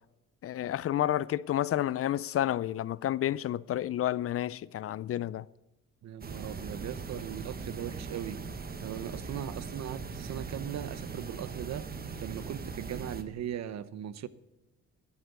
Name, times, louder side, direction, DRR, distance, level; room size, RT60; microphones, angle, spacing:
voice 1, 0.4-5.5, left 12 dB, 50° left, 0.4 m, -30 dB
voice 2, 6.0-8.4 8.8-11.9 12.2-14.3, right 10 dB, 60° right, 0.8 m, -39 dB
sound 1, 6.2-13.2, right 5 dB, 30° right, 1.2 m, -40 dB
13.0 x 8.0 x 8.3 m
cardioid pair, 90°, 30 cm